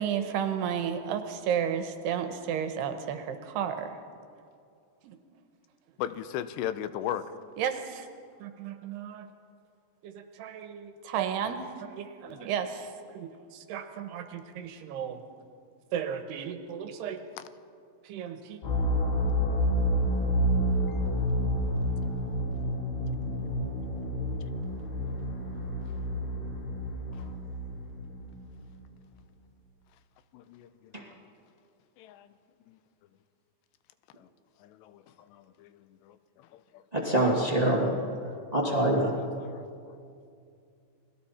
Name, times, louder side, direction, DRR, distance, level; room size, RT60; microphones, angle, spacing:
voice 1, 0.0-4.0 5.0-5.2 7.6-8.1 8.4-9.3 10.0-15.2 15.9-17.2 18.0-18.6, right 8 dB, 75° right, 8 dB, 2.9 m, -33 dB
voice 2, 6.0-7.3 12.3-12.4 17.4-17.5 30.3-30.7 32.0-32.3 32.7-32.8 34.2-34.3 34.6-35.0 35.3-35.7 36.0-36.2 36.5-36.6 39.4-39.9, left 11 dB, 80° left, 12 dB, 2.8 m, -36 dB
sound 1, 18.6-28.5, equal, 60° left, 4.7 m, -29 dB
voice 3, 36.9-37.9 38.5-39.1, right 1 dB, 25° right, -2 dB, 0.8 m, -25 dB
29.5 x 21.0 x 4.3 m, 2.4 s
omnidirectional pair, 5.1 m